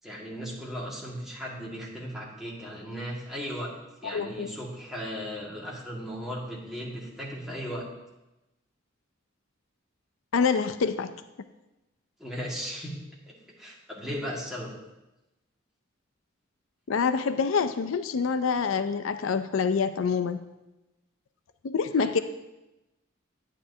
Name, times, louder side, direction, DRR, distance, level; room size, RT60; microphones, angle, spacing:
voice 1, 0.0-3.7 4.0-7.9 12.2-13.0 13.2-14.7 22.0-22.1, equal, ahead, -5 dB, 1.8 m, -36 dB
voice 2, 4.0-4.5 10.3-11.1 16.9-20.4 21.6-22.2, left 5 dB, 80° left, 11 dB, 0.4 m, -26 dB
10.0 x 9.1 x 2.7 m, 0.98 s
head